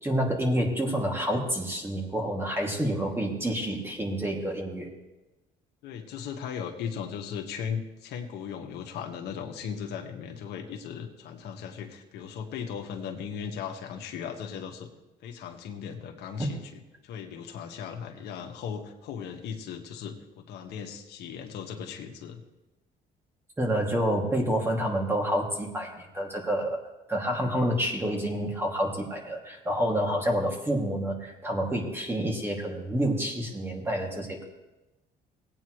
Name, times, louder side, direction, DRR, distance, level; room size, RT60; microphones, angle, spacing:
voice 1, 0.0-4.9 16.4-16.5 23.6-26.8 27.1-34.5, equal, 15° right, 0 dB, 2.4 m, -28 dB
voice 2, 5.8-14.9 15.2-22.4, left 7 dB, 80° left, 3 dB, 1.6 m, -37 dB
18.5 x 9.0 x 3.2 m, 1.0 s
cardioid pair, 110°, 17 cm